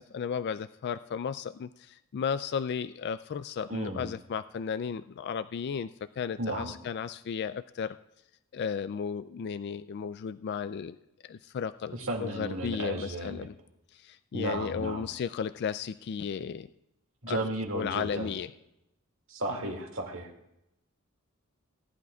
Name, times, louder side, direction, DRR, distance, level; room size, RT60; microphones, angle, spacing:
voice 1, 0.0-5.9 6.2-8.0 8.5-11.0 11.2-13.5 13.9-16.7 17.3-17.4 17.7-18.5 19.5-19.7, left 6 dB, 50° left, 13 dB, 0.3 m, -34 dB
voice 2, 3.7-4.1 6.4-6.7 11.9-13.5 14.3-15.1 17.2-18.3 19.3-20.3, right 1 dB, 65° right, 1 dB, 2.2 m, -34 dB
19.0 x 11.0 x 2.3 m, 0.85 s
head